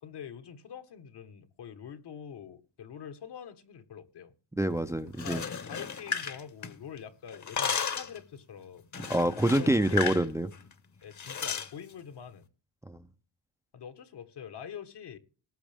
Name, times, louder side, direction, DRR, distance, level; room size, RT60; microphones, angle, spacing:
voice 1, 0.0-4.3 5.2-8.9 9.6-10.3 11.0-12.5 13.7-15.2, left 8 dB, 65° left, 1.5 m, -45 dB
voice 2, 4.5-5.4 9.1-10.5 12.8-13.0, right 1 dB, 5° right, 0.4 m, -26 dB
sound 1, 5.1-7.0 7.3-8.2 8.9-10.3 10.5-10.7 11.2-11.7, left 7 dB, 40° left, 1.1 m, -34 dB
19.5 x 7.2 x 3.5 m
wide cardioid pair, 160°, 43 cm